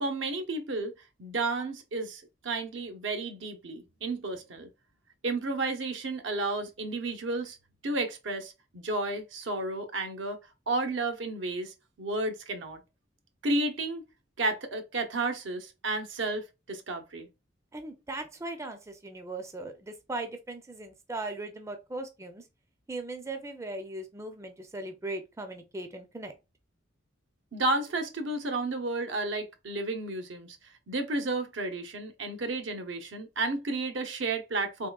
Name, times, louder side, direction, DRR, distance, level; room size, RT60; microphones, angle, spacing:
voice 1, 0.0-0.9 1.2-4.7 5.2-7.6 7.8-10.4 10.7-12.8 13.4-14.0 14.4-17.3 27.5-30.6 30.9-34.9, right 2 dB, 80° right, 0.7 m, -32 dB
voice 2, 17.7-22.5 22.9-26.3, right 2 dB, 15° right, 0.4 m, -38 dB
3.6 x 3.1 x 2.3 m
head